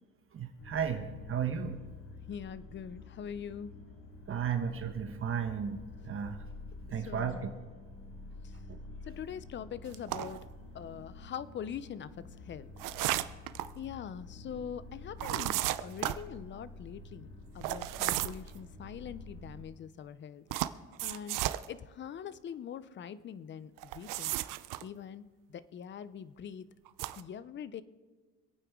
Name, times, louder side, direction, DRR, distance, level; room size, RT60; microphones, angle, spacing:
voice 1, 0.3-1.8 4.3-5.8 6.0-6.4 6.9-7.5 8.7-8.8, right 7 dB, 40° right, 6 dB, 1.2 m, -34 dB
sound 1, 0.6-19.6, left 2 dB, 65° left, 4.7 m, -49 dB
voice 2, 2.3-3.8 7.1-7.5 8.4-8.5 9.1-10.5 10.7-12.7 13.8-17.3 17.5-20.5 21.0-21.4 21.7-24.4 24.8-25.2 25.5-26.7 27.2-27.8, left 8 dB, 35° left, 16 dB, 0.6 m, -43 dB
sound 2, 9.9-10.4 12.8-13.7 15.2-16.2 17.6-18.5 20.5-21.7 23.8-24.8 26.9-27.2, right 15 dB, 75° right, 0.6 m, -33 dB
26.0 x 9.0 x 3.6 m, 1.4 s
cardioid pair, 125°, 32 cm